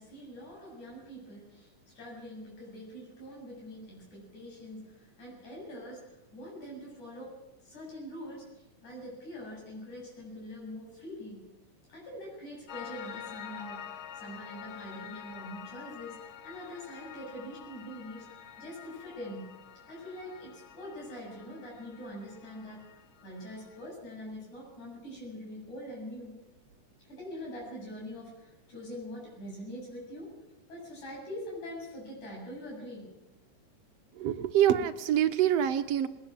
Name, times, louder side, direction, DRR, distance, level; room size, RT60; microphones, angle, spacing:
voice 1, 0.0-7.3 7.6-11.4 11.9-18.3 18.6-19.5 19.9-22.8 23.2-26.3 27.1-30.3 30.7-33.1, equal, 90° left, -2 dB, 9.5 m, -44 dB
Piano, 12.7-23.9, left 9 dB, 60° left, 1.4 m, -47 dB
voice 2, 34.2-36.1, right 10 dB, 65° right, 8 dB, 2.0 m, -25 dB
20.0 x 19.5 x 7.5 m, 1.0 s
omnidirectional pair, 3.3 m